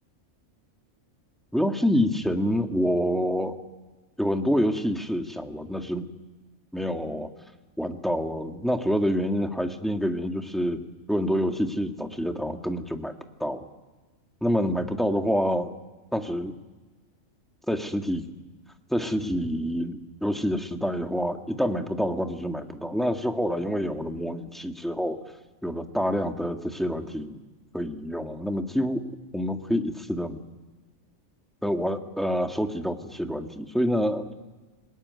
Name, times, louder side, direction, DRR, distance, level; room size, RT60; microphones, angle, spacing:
voice 1, 1.5-3.6 4.2-6.1 6.7-7.3 7.8-10.8 11.1-13.1 13.4-13.6 14.4-15.7 16.1-16.5 17.7-18.2 18.9-25.2 25.6-27.4 27.7-29.0 29.3-30.4 31.6-34.3, equal, ahead, 4 dB, 1.6 m, -27 dB
28.0 x 19.5 x 9.5 m, 1.2 s
omnidirectional pair, 1.4 m